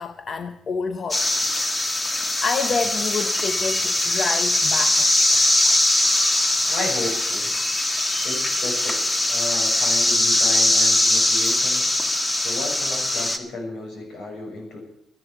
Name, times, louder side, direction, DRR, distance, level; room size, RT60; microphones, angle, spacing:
voice 1, 0.0-1.8 2.4-5.1, left 4 dB, 45° left, 0.8 m, -28 dB
sound 1, 1.1-13.4, left 1 dB, 25° left, 1.7 m, -21 dB
voice 2, 6.7-7.5 8.2-11.9 12.3-14.8, left 2 dB, 75° left, 6.3 m, -33 dB
13.5 x 11.0 x 8.0 m
cardioid pair, 90°, 0 cm